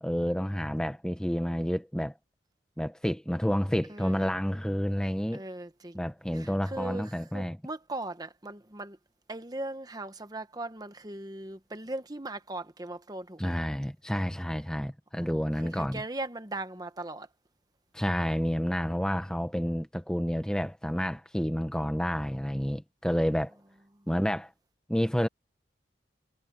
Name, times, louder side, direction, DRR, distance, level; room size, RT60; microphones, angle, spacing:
voice 1, 0.0-2.1 2.8-5.4 5.9-7.6 13.4-16.0 17.9-23.6 24.1-24.5 24.9-25.3, equal, 5° left, 0.9 m, -29 dB
voice 2, 3.9-4.3 5.3-6.1 6.3-9.0 9.3-13.7 15.2-17.3, right 2 dB, 20° right, 1.1 m, -39 dB
head